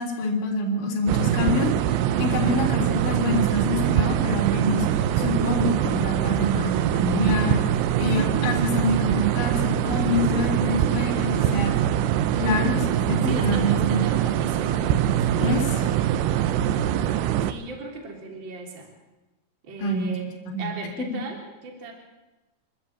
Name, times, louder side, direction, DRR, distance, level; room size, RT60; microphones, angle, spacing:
voice 1, 0.0-1.7 2.2-4.9 5.2-7.6 8.0-11.7 12.4-14.1 15.4-16.0 19.8-20.1 20.5-20.7 21.0-21.1, left 2 dB, 65° left, 0 dB, 5.7 m, -26 dB
sound 1, 1.1-17.5, right 11 dB, 80° right, 2.6 m, -23 dB
voice 2, 8.0-8.6 13.2-15.9 17.4-18.9 19.6-20.3 20.6-21.9, right 3 dB, 25° right, 3 dB, 3.5 m, -36 dB
28.5 x 13.5 x 8.9 m, 1.1 s
omnidirectional pair, 5.9 m